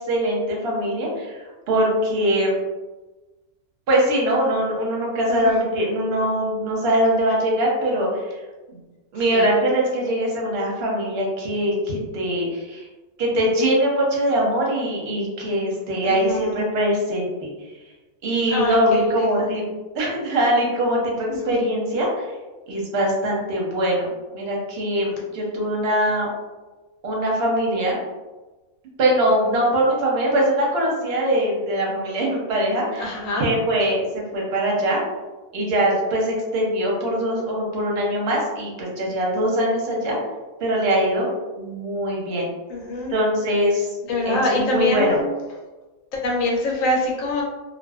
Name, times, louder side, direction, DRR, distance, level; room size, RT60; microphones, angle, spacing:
voice 1, 0.1-2.6 3.9-8.4 8.7-8.8 9.1-12.9 13.2-17.5 18.2-19.7 19.9-22.3 22.7-24.1 24.3-26.3 27.0-28.0 29.0-35.0 35.5-40.2 40.6-41.3 41.6-42.5 43.1-43.9 44.3-45.2, equal, 55° right, -2 dB, 0.7 m, -22 dB
voice 2, 5.3-5.6 9.3-9.5 16.0-16.6 18.5-19.0 19.4-19.5 21.3-21.5 33.0-33.5 42.7-43.1 44.1-45.2 46.1-47.4, left 1 dB, 70° left, -2 dB, 0.9 m, -24 dB
2.5 x 2.2 x 2.3 m, 1.2 s
omnidirectional pair, 1.6 m